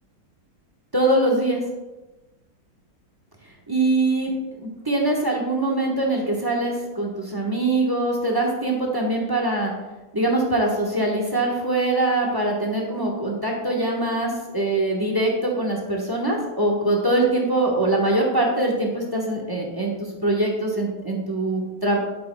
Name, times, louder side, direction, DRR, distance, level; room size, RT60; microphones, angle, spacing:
voice 1, 0.9-1.6 3.7-9.7 10.1-22.0, right 2 dB, 15° right, -1 dB, 0.9 m, -23 dB
9.4 x 8.2 x 2.3 m, 1.1 s
omnidirectional pair, 2.1 m